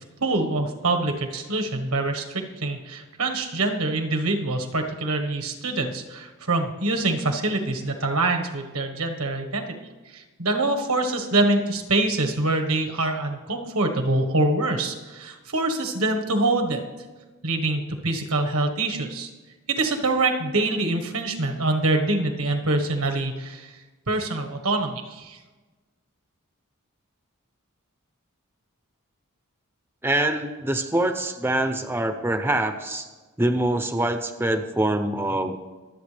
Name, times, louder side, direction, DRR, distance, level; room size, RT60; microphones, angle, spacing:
voice 1, 0.2-9.7 10.0-16.8 17.4-19.3 19.7-23.7 24.1-25.4, right 2 dB, 90° right, 4 dB, 1.4 m, -25 dB
voice 2, 30.0-33.1 33.4-35.6, right 1 dB, 10° right, 7 dB, 0.6 m, -24 dB
23.5 x 8.1 x 3.4 m, 1.3 s
head